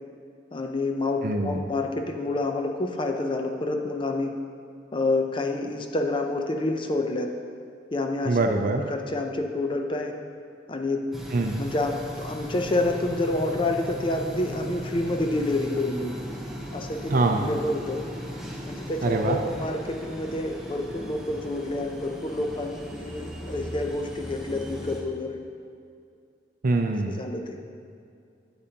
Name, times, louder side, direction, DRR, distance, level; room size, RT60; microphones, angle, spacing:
voice 1, 0.5-4.3 4.9-7.3 7.9-8.4 8.9-10.1 10.7-11.0 11.6-16.1 16.7-18.0 18.7-25.4 27.2-27.6, left 2 dB, 30° left, 4 dB, 0.5 m, -28 dB
voice 2, 1.2-1.6 8.3-8.8 11.3-11.6 17.1-17.5 19.0-19.4 26.6-27.2, right 2 dB, 50° right, 4 dB, 0.5 m, -24 dB
sound 1, 11.1-25.0, equal, ahead, 0.9 m, -37 dB
8.7 x 8.6 x 2.9 m, 2.4 s
head